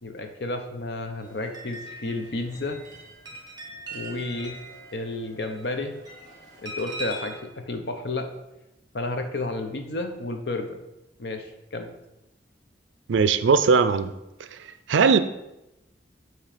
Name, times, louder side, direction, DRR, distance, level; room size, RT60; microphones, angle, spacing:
voice 1, 0.0-2.8 3.9-4.6 4.9-5.9 6.6-8.3 8.9-10.8 11.2-11.9, left 2 dB, 65° left, 6 dB, 0.8 m, -31 dB
sound 1, 1.2-7.4, right 2 dB, 20° right, 1.3 m, -41 dB
voice 2, 13.1-14.1 14.5-14.6 14.9-15.2, right 5 dB, 90° right, 12 dB, 0.4 m, -19 dB
7.5 x 3.2 x 4.9 m, 0.91 s
head